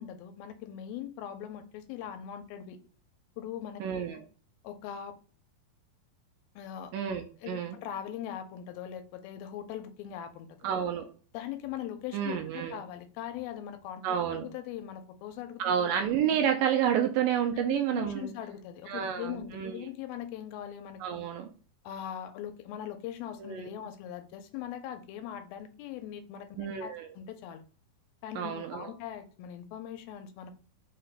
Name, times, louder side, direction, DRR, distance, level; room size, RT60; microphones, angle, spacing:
voice 1, 0.0-2.8 3.4-3.8 4.6-5.2 6.6-6.9 7.4-10.7 11.3-14.0 14.3-16.0 17.5-21.2 21.8-27.6 28.2-30.5, left 10 dB, 90° left, 8 dB, 2.4 m, -41 dB
voice 2, 3.8-4.2 6.9-7.8 10.6-11.1 12.1-12.8 14.0-14.5 15.6-18.3 18.9-19.9 21.0-21.5 23.4-23.7 26.6-27.1 28.4-28.9, right 9 dB, 80° right, 5 dB, 2.0 m, -30 dB
5.6 x 2.2 x 4.0 m, 0.40 s
omnidirectional pair, 4.2 m